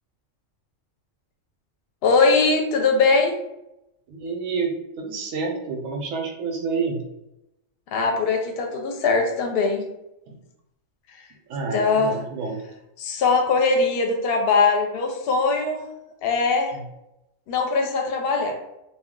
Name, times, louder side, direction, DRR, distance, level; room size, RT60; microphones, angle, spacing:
voice 1, 2.0-3.3 7.9-9.8 11.7-12.2 13.0-15.8 16.2-16.7 17.5-18.6, left 4 dB, 60° left, 3 dB, 0.7 m, -21 dB
voice 2, 4.1-7.0 10.3-10.4 11.5-12.6, right 4 dB, 90° right, 2 dB, 1.0 m, -29 dB
2.3 x 2.2 x 3.6 m, 0.88 s
omnidirectional pair, 1.3 m